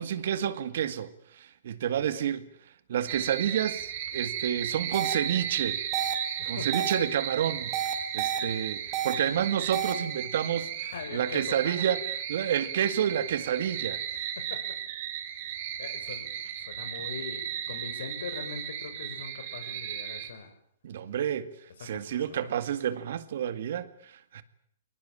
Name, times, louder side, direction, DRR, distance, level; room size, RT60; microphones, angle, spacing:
voice 1, 0.0-2.5 2.9-5.8 6.5-7.8 8.1-14.0 20.8-21.5 21.8-24.4, right 9 dB, 65° right, 2.1 m, -30 dB
sound 1, 3.1-20.3, right 9 dB, 50° right, 4.9 m, -35 dB
sound 2, 4.9-5.1 5.9-6.1 6.7-6.9 7.7-8.4 8.9-9.1 9.7-9.9, right 11 dB, 30° right, 4.1 m, -30 dB
voice 2, 6.4-6.8 10.9-11.7 14.4-14.6 15.8-16.3 16.6-20.5 21.8-22.5, left 6 dB, 75° left, 6.7 m, -41 dB
22.5 x 19.5 x 8.9 m
hypercardioid pair, 145°, 0 cm